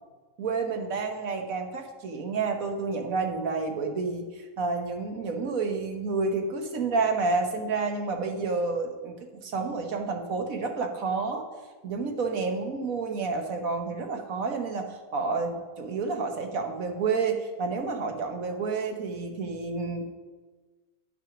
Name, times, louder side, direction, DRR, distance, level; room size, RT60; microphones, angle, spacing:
voice 1, 0.4-11.5 11.8-20.2, right 4 dB, 85° right, 4 dB, 1.5 m, -30 dB
9.8 x 6.1 x 6.0 m, 1.3 s
omnidirectional pair, 1.4 m